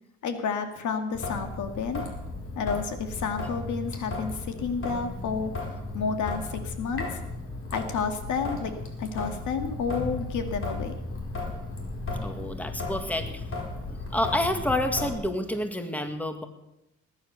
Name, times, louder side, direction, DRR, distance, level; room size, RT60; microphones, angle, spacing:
voice 1, 0.2-2.0 2.6-7.1 7.7-8.7 9.0-10.9, left 5 dB, 75° left, 7 dB, 2.2 m, -30 dB
Traffic noise roadway noise / Drip / Trickle dribble, 1.1-15.1, left 2 dB, 45° left, 4.6 m, -35 dB
voice 2, 12.2-13.4 13.9-16.5, left 1 dB, 5° left, 7 dB, 1.9 m, -29 dB
19.5 x 9.9 x 6.8 m, 0.88 s
cardioid pair, 90°, 30 cm